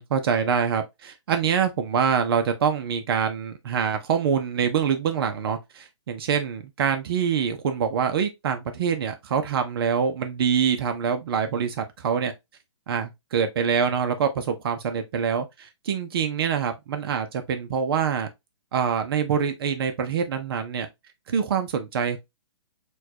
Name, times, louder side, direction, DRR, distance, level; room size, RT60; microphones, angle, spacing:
voice 1, 0.0-12.3 12.9-18.3 18.7-20.9 21.3-22.2, right 7 dB, 50° right, 0.7 m, -25 dB
4.3 x 2.4 x 2.8 m
hypercardioid pair, 150°, 16 cm